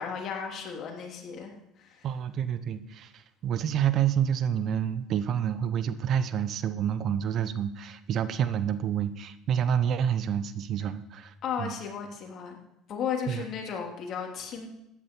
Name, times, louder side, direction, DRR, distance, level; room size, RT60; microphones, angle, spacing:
voice 1, 0.0-1.5 1.8-2.1 11.4-12.6 12.9-14.7, left 7 dB, 55° left, 2 dB, 3.0 m, -34 dB
voice 2, 2.0-11.7 13.3-13.4, right 9 dB, 55° right, 13 dB, 0.9 m, -28 dB
14.5 x 10.0 x 4.6 m, 0.84 s
supercardioid pair, 95°, 0 cm